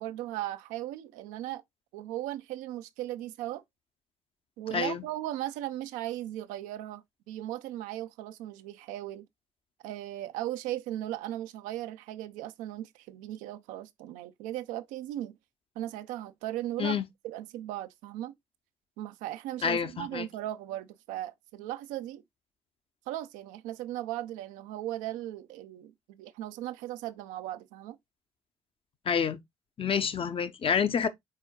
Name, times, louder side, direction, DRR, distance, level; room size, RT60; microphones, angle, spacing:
voice 1, 0.0-1.6 1.9-3.6 4.6-9.3 9.8-15.4 15.8-17.0 17.2-18.3 19.0-22.2 23.1-28.0, right 14 dB, 75° right, 0.5 m, -37 dB
voice 2, 4.7-5.0 16.8-17.0 19.6-20.3 29.1-29.4 29.8-31.1, left 7 dB, 45° left, 0.7 m, -28 dB
4.6 x 4.3 x 2.2 m
hypercardioid pair, 50°, 14 cm